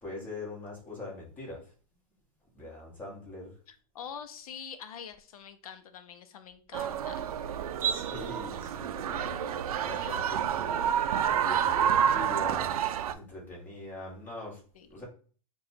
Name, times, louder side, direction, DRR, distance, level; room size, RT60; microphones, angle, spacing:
voice 1, 0.0-1.6 2.5-3.5 7.8-10.9 11.3-12.7 13.1-14.6 14.9-15.0, left 2 dB, 10° left, -4 dB, 1.3 m, -42 dB
voice 2, 3.7-7.3 9.9-10.4 14.7-14.9, left 7 dB, 75° left, 9 dB, 0.5 m, -45 dB
sound 1, 6.7-13.1, right 9 dB, 80° right, 0.4 m, -29 dB
3.8 x 2.3 x 4.2 m, 0.41 s
supercardioid pair, 165°, 18 cm